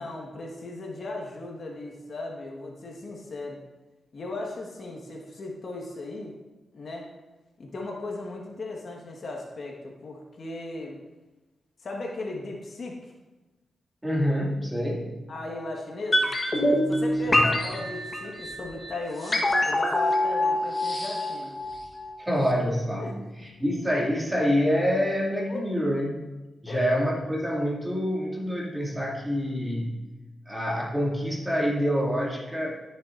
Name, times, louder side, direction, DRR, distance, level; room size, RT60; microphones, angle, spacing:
voice 1, 0.0-3.6 4.1-6.3 6.7-7.0 7.6-11.0 11.8-13.0 15.3-16.3 16.9-21.5 23.0-23.1 25.5-25.6 26.7-26.8, left 2 dB, 60° left, 0 dB, 1.6 m, -37 dB
voice 2, 14.0-15.1 17.3-17.5 22.2-26.3 26.6-30.0 30.5-32.8, equal, 10° right, -4 dB, 2.6 m, -27 dB
sound 1, 16.1-22.2 22.4-22.5, left 1 dB, 30° left, 1.4 m, -25 dB
13.5 x 7.0 x 2.6 m, 1.1 s
cardioid pair, 75°, 0 cm